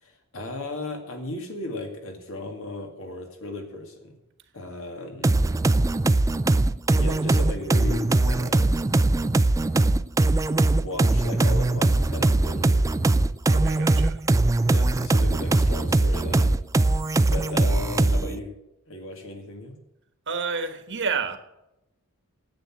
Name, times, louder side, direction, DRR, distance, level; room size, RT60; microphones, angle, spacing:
voice 1, 0.0-4.1 4.5-5.5 7.0-8.8 10.7-12.9 13.7-14.1 14.7-16.6 17.3-18.5 18.9-19.8, left 2 dB, 65° left, 2.3 m, -36 dB
sound 1, 5.2-18.4, right 2 dB, 15° right, 0.3 m, -21 dB
voice 2, 13.5-14.2 20.3-21.4, right 5 dB, 55° right, 1.3 m, -29 dB
10.5 x 8.0 x 7.6 m
head